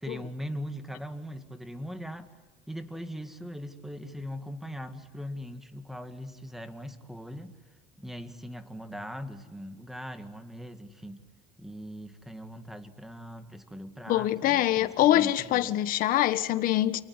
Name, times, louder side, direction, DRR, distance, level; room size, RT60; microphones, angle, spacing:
voice 1, 0.0-2.3 2.7-7.5 8.0-11.2 11.6-15.7, equal, ahead, 1.9 m, -40 dB
voice 2, 14.1-17.0, left 13 dB, 60° left, 1.5 m, -24 dB
28.5 x 19.0 x 9.9 m
cardioid pair, 145°, 17 cm